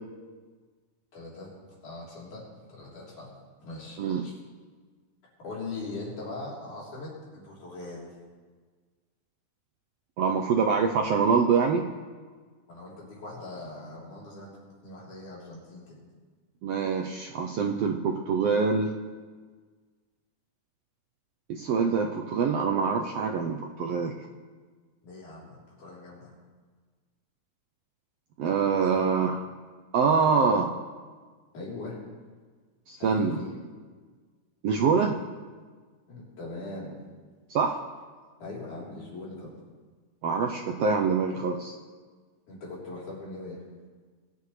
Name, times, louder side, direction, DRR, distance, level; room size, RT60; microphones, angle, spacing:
voice 1, 1.1-1.5 1.8-3.3 3.6-4.4 5.4-8.1 12.7-16.0 25.0-26.3 28.8-29.1 31.5-32.0 33.0-33.5 36.1-37.0 38.4-39.5 42.5-43.6, left 2 dB, 80° left, -6 dB, 5.1 m, -40 dB
voice 2, 10.2-11.8 16.6-18.9 21.5-24.1 28.4-29.4 29.9-30.7 32.9-33.4 34.6-35.2 37.5-37.8 40.2-41.7, right 5 dB, 75° right, 2 dB, 1.4 m, -25 dB
21.0 x 10.5 x 3.3 m, 1.5 s
omnidirectional pair, 3.5 m